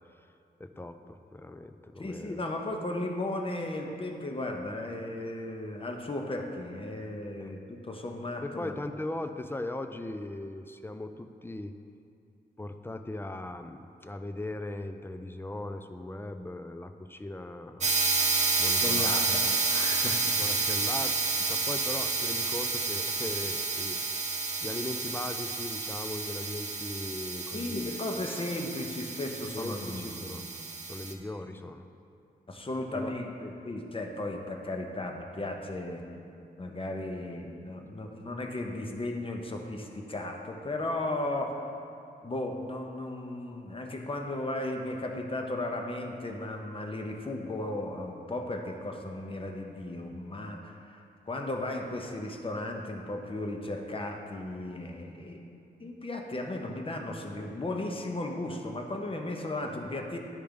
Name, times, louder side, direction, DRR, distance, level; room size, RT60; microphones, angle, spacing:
voice 1, 0.6-2.4 7.4-7.5 8.4-11.7 12.6-17.9 18.6-19.6 20.0-21.1 21.5-24.0 24.6-27.9 29.5-30.5 30.9-31.9 32.9-33.1, left 2 dB, 10° left, 8 dB, 0.3 m, -39 dB
voice 2, 2.0-8.8 18.8-20.2 27.5-30.5 32.5-36.1 36.6-41.7 42.2-55.5 55.8-60.2, left 2 dB, 30° left, 2 dB, 0.8 m, -35 dB
sound 1, 17.8-31.1, right 4 dB, 40° right, 0.6 m, -30 dB
9.0 x 3.4 x 5.1 m, 2.6 s
cardioid pair, 75°, 18 cm